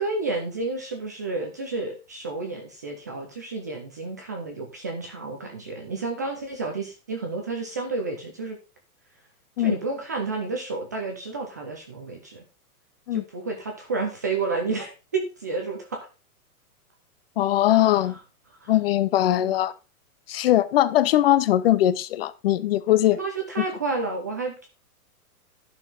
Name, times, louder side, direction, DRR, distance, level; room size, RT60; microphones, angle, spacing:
voice 1, 0.0-8.6 9.6-12.4 13.1-16.0 17.7-18.0 18.6-18.7 19.4-19.5 23.1-24.7, right 3 dB, 15° right, 0.4 m, -31 dB
voice 2, 17.4-18.2 18.7-19.7 20.3-23.2 23.6-23.7, left 13 dB, 40° left, 0.6 m, -21 dB
11.5 x 5.9 x 3.7 m
hypercardioid pair, 155°, 45 cm